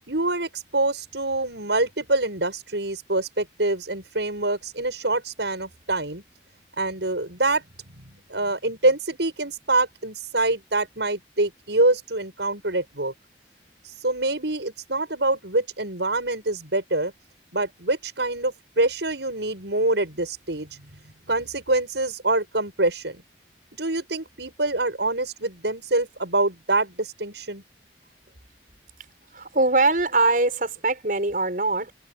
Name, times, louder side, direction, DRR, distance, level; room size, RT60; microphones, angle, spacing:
voice 1, 0.1-6.2 6.8-7.6 8.0-8.1 8.3-13.1 13.8-17.1 17.5-20.7 21.3-23.2 23.7-27.6, right 2 dB, 80° right, 6.4 m, -25 dB
voice 2, 29.3-31.9, right 2 dB, 50° right, 6.4 m, -22 dB
head